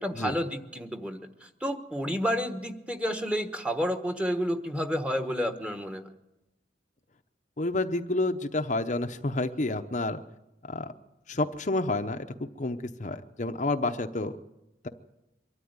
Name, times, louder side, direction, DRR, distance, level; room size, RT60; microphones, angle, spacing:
voice 1, 0.0-6.1, equal, 5° right, 7 dB, 1.2 m, -30 dB
voice 2, 7.6-10.2 10.7-10.9 11.3-14.4, left 2 dB, 40° left, 6 dB, 0.8 m, -29 dB
23.5 x 13.0 x 9.6 m, 0.96 s
head